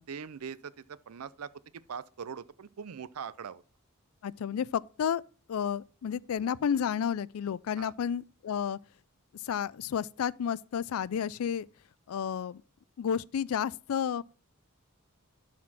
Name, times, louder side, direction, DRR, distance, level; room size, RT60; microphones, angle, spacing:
voice 1, 0.1-1.5 1.9-3.6 7.8-7.9, right 6 dB, 80° right, 0.5 m, -41 dB
voice 2, 4.2-5.2 5.5-8.8 9.4-11.7 12.1-12.6 13.0-14.2, left 8 dB, 70° left, 0.3 m, -31 dB
12.0 x 4.3 x 4.1 m
head